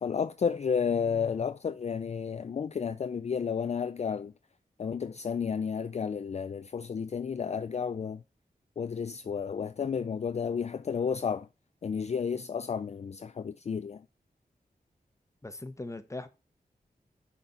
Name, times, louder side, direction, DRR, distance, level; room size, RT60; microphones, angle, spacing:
voice 1, 0.0-4.3 4.8-8.2 8.8-11.5 11.8-14.1, left 6 dB, 45° left, 0.4 m, -32 dB
voice 2, 15.4-16.3, left 2 dB, 20° left, 0.9 m, -39 dB
6.7 x 4.1 x 5.6 m
wide cardioid pair, 70°, 16 cm